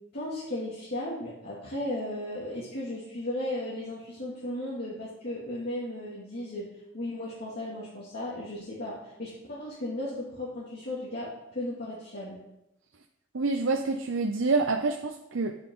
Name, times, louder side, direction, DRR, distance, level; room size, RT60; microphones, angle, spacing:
voice 1, 0.1-6.7 6.9-12.4, left 1 dB, 55° left, -7 dB, 2.5 m, -35 dB
voice 2, 13.3-15.5, right 3 dB, 80° right, 4 dB, 0.7 m, -27 dB
11.0 x 8.8 x 3.9 m, 0.88 s
head